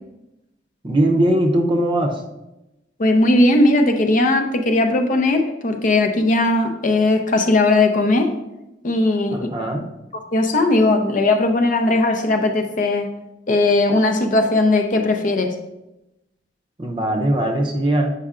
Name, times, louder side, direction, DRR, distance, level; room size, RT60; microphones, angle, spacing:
voice 1, 0.8-2.2 9.3-9.9 16.8-18.1, right 1 dB, 30° right, 3 dB, 0.6 m, -20 dB
voice 2, 3.0-8.3 8.8-9.5 10.3-13.1 13.5-15.5, left 2 dB, 45° left, 5 dB, 0.6 m, -18 dB
8.2 x 5.4 x 2.5 m, 0.95 s
head